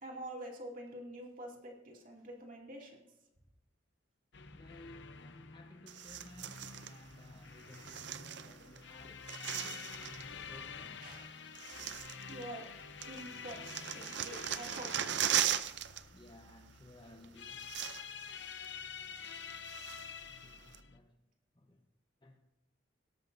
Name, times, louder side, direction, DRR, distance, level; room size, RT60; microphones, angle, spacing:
voice 1, 0.0-3.0 11.0-11.4 12.3-12.7 13.1-13.6 13.9-14.9, right 1 dB, 45° right, 2.5 m, -46 dB
sound 1, 4.3-21.0, left 6 dB, 65° left, 0.7 m, -48 dB
voice 2, 4.5-9.4 9.8-11.3 16.1-17.8 20.2-21.2 21.5-21.9 22.2-22.4, left 1 dB, 25° left, 1.0 m, -57 dB
sound 2, 5.9-6.9 7.7-8.8 9.0-10.3 11.1-11.2 11.5-12.7 13.0-16.0 16.3-16.5 17.2-17.3 17.5-18.3 18.6-18.7 19.2-20.2 20.7-20.8, right 10 dB, 60° right, 0.5 m, -38 dB
sound 3, 8.6-8.7 9.0-9.2 10.3-10.9 11.7-12.2 13.7-13.9 14.2-14.3 14.5-14.9 15.2-15.6, equal, 80° right, 2.2 m, -65 dB
17.5 x 13.0 x 2.7 m
head